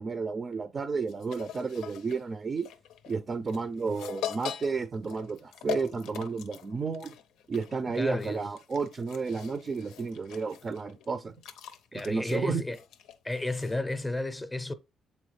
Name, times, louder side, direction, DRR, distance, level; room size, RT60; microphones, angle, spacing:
voice 1, 0.0-2.7 3.1-7.1 7.5-11.3 11.9-12.6, right 4 dB, 40° right, 0.5 m, -32 dB
sound 1, 1.1-14.1, left 11 dB, 90° left, 0.5 m, -43 dB
voice 2, 7.9-8.4 11.9-12.8 13.2-14.7, left 2 dB, 15° left, 0.6 m, -32 dB
7.2 x 4.1 x 3.2 m
cardioid pair, 90°, 0 cm